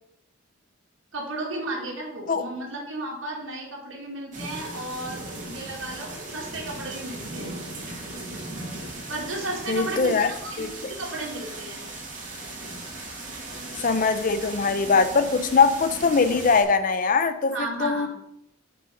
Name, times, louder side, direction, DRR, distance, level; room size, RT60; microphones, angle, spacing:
voice 1, 1.1-7.6 9.1-11.9 17.5-18.1, right 2 dB, 75° right, 2.1 m, -34 dB
sound 1, 4.3-16.6, right 2 dB, 40° right, 2.3 m, -37 dB
voice 2, 9.7-10.3 10.6-10.9 13.8-18.1, left 5 dB, 45° left, 0.5 m, -22 dB
7.8 x 5.7 x 5.1 m
head